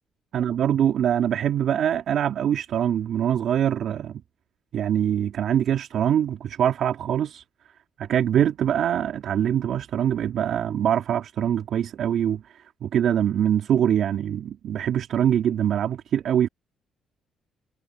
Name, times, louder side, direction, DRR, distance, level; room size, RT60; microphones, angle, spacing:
voice 1, 0.3-4.2 4.7-7.4 8.0-16.5, right 9 dB, 70° right, 3.3 m, -23 dB
cardioid pair, 90°, 0 cm